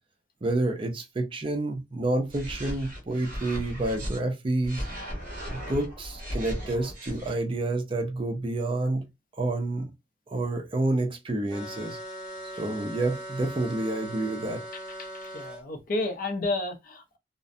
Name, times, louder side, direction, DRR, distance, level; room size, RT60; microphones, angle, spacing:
voice 1, 0.4-4.9 5.5-9.0 9.3-9.9 10.3-12.0 12.6-14.7, right 2 dB, 30° right, 0.4 m, -29 dB
sound 1, 2.3-4.2 4.6-7.3, equal, 45° right, 1.0 m, -36 dB
sound 2, 11.5-15.6, right 1 dB, 5° right, 0.9 m, -40 dB
voice 2, 15.0-17.2, left 2 dB, 50° left, 0.5 m, -31 dB
2.5 x 2.0 x 2.5 m
head